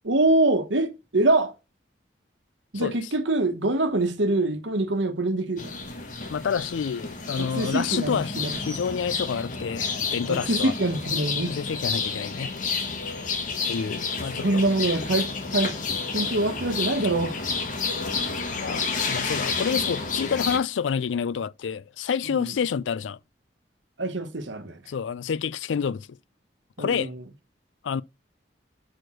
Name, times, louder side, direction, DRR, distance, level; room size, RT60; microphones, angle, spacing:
voice 1, 0.0-1.5 2.7-5.7 7.4-8.6 10.3-11.6 14.4-15.8 16.1-17.4 22.2-22.5 24.0-24.8 26.8-27.2, right 2 dB, 80° right, 1.2 m, -25 dB
sound 1, 5.6-20.6, left 4 dB, 45° left, 1.3 m, -30 dB
voice 2, 6.3-10.7 11.4-12.5 13.7-14.6 18.5-23.2 24.9-26.1 26.8-27.1 27.8-28.0, left 6 dB, 85° left, 0.4 m, -28 dB
6.1 x 5.0 x 6.2 m
head